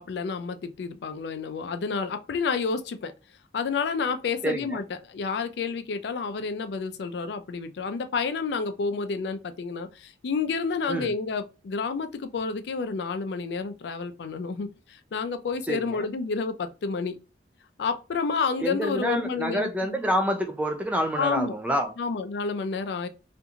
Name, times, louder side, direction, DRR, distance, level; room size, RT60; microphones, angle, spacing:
voice 1, 0.0-3.1 3.5-17.2 17.8-19.9 21.2-21.5 22.0-23.1, left 5 dB, 70° left, 0.4 m, -30 dB
voice 2, 4.4-4.8 10.9-11.1 15.7-16.1 18.6-21.9, equal, 10° right, 0.3 m, -27 dB
2.8 x 2.5 x 2.4 m
head